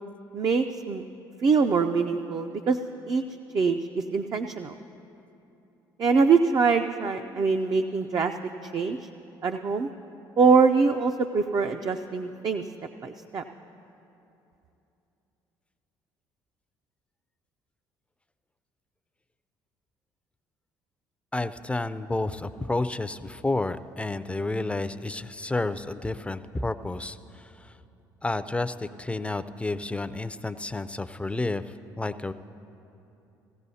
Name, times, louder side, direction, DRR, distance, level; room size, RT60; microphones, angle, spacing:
voice 1, 0.3-1.0 1.4-2.8 3.1-3.2 3.5-4.7 6.0-8.3 8.6-9.1 9.4-9.9 10.4-12.6 13.0-13.4, right 5 dB, 40° right, 5 dB, 0.5 m, -23 dB
voice 2, 21.3-27.7 28.2-31.6 32.0-32.3, left 2 dB, 10° left, 13 dB, 0.4 m, -30 dB
18.0 x 15.5 x 2.8 m, 2.9 s
hypercardioid pair, 65°, 10 cm